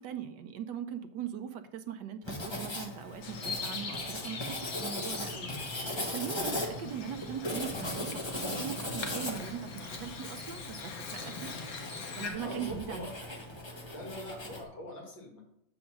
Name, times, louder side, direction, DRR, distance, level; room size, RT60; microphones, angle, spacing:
voice 1, 0.0-11.5 12.2-13.1, right 9 dB, 70° right, 9 dB, 1.2 m, -40 dB
Writing, 2.2-14.6, left 1 dB, 20° left, 0.7 m, -39 dB
Bird vocalization bird call bird song, 3.2-12.3, left 4 dB, 50° left, 1.3 m, -42 dB
voice 2, 12.4-13.1 13.9-15.4, left 1 dB, 70° left, 0 dB, 2.6 m, -42 dB
7.1 x 5.0 x 6.0 m, 0.83 s
omnidirectional pair, 2.2 m